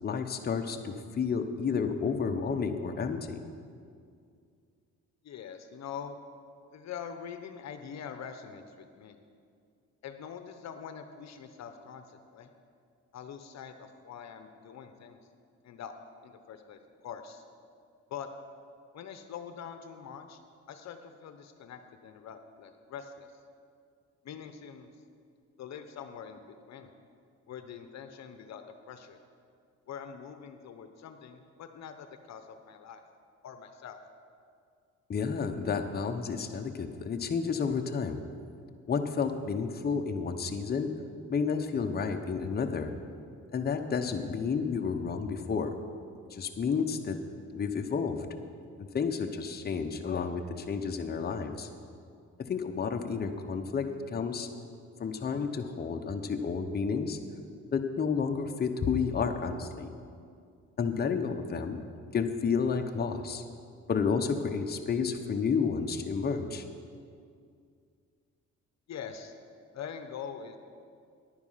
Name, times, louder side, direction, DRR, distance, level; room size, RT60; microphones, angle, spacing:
voice 1, 0.0-3.4 35.1-38.2 38.9-40.9 41.3-42.9 43.5-45.7 46.3-47.2 47.5-48.2 48.9-51.7 52.5-54.5 55.0-57.2 57.7-59.9 60.8-61.8 62.1-63.4 63.9-66.6, left 5 dB, 30° left, 5 dB, 0.8 m, -31 dB
voice 2, 5.2-6.2 6.7-9.2 10.0-12.5 13.1-15.2 15.6-15.9 16.2-17.4 18.1-18.3 18.9-20.4 20.7-23.4 24.2-24.9 25.6-26.4 26.7-26.9 27.5-29.2 29.9-33.0 33.4-34.0 68.9-69.3 69.7-70.6, left 7 dB, 65° left, 8 dB, 0.8 m, -44 dB
10.5 x 9.6 x 5.6 m, 2.3 s
cardioid pair, 90°, 30 cm